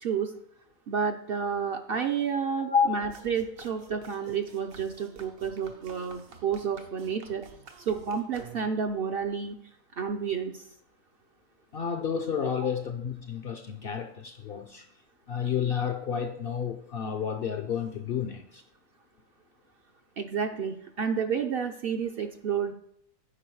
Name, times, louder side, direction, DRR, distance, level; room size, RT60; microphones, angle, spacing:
voice 1, 0.0-0.3 0.9-7.4 7.8-9.6 9.9-10.6 12.6-12.7 20.2-22.7, right 6 dB, 60° right, 0.6 m, -30 dB
sound 1, 3.1-8.9, right 6 dB, 85° right, 1.4 m, -50 dB
voice 2, 11.7-14.9 15.3-18.6, left 7 dB, 60° left, 0.6 m, -30 dB
8.9 x 4.9 x 4.6 m
omnidirectional pair, 1.4 m